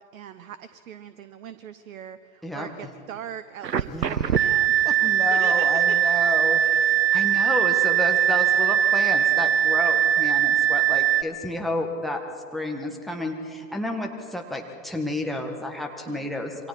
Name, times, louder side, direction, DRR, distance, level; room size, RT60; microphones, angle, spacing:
voice 1, 0.0-6.0 16.1-16.3, right 9 dB, 55° right, 13 dB, 1.0 m, -41 dB
sound 1, 3.6-11.2, right 10 dB, 80° right, 0.9 m, -21 dB
voice 2, 3.9-4.4 4.8-6.6 6.9-12.2 12.5-16.7, left 1 dB, ahead, 1 dB, 1.8 m, -31 dB
27.5 x 24.5 x 4.3 m, 2.5 s
figure-of-eight pair, 110°, 49 cm